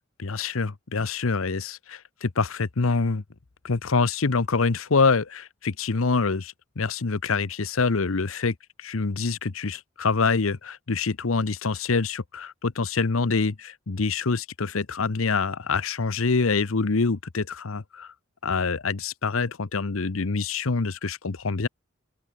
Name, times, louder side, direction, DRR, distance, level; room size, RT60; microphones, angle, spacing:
voice 1, 0.2-3.2 3.6-8.5 8.8-18.1 18.4-21.7, left 4 dB, 80° left, 0.9 m, -25 dB
open air
head